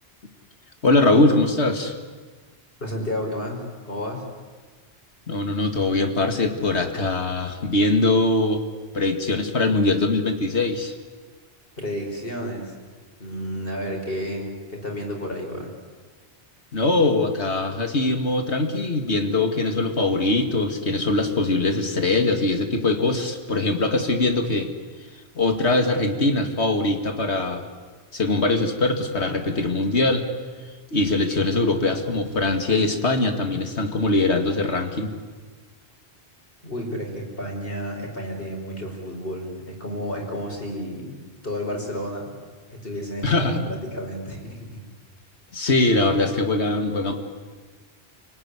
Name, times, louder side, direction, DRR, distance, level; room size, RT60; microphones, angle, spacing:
voice 1, 0.8-2.0 5.3-8.6 8.9-10.9 16.7-24.7 25.4-27.7 28.1-30.2 30.9-35.1 43.2-43.6 45.5-47.1, left 2 dB, 75° left, 6 dB, 2.5 m, -22 dB
voice 2, 2.8-3.6 3.9-4.2 11.8-12.7 13.2-15.7 36.6-41.2 41.4-42.3 42.7-44.8, equal, 55° left, 1 dB, 5.5 m, -31 dB
30.0 x 19.0 x 9.8 m, 1.4 s
omnidirectional pair, 1.1 m